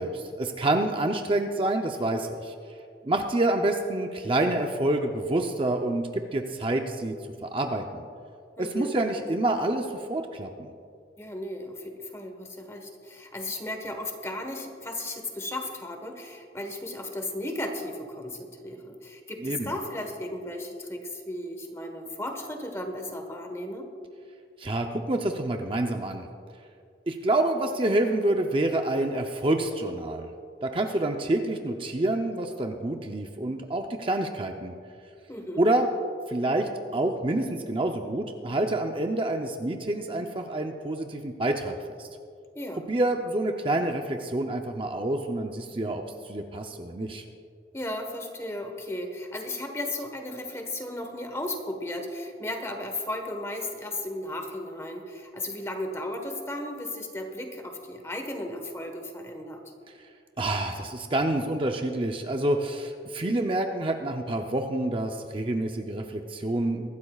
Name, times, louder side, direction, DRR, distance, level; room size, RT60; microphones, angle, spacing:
voice 1, 0.0-2.5 3.0-7.1 7.4-8.1 8.6-10.7 19.4-19.7 24.6-26.3 27.1-30.3 30.6-34.7 35.6-35.9 36.3-42.1 42.9-47.2 60.4-66.9, right 1 dB, 30° right, 4 dB, 0.6 m, -27 dB
voice 2, 8.6-8.9 11.2-23.9 35.3-35.6 42.5-42.8 47.7-59.6, left 1 dB, 15° left, 4 dB, 1.2 m, -35 dB
23.5 x 12.5 x 2.4 m, 2.3 s
head